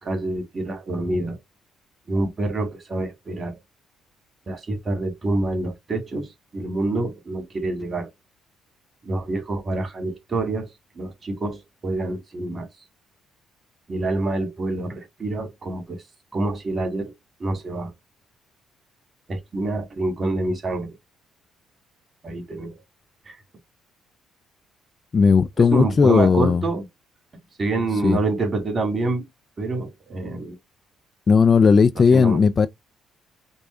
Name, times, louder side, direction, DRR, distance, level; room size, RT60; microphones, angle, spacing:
voice 1, 0.0-1.4 2.1-3.6 4.5-8.1 9.0-10.7 11.0-12.7 13.9-16.0 16.3-17.1 17.4-17.9 19.3-21.0 22.2-22.8 23.3-23.4 25.6-26.9 27.6-29.3 29.6-30.6 32.0-32.4, right 2 dB, 35° right, 2.1 m, -27 dB
voice 2, 25.1-26.6 28.0-28.2 31.3-32.7, left 5 dB, 40° left, 0.3 m, -16 dB
5.3 x 2.4 x 3.2 m
cardioid pair, 80°, 0 cm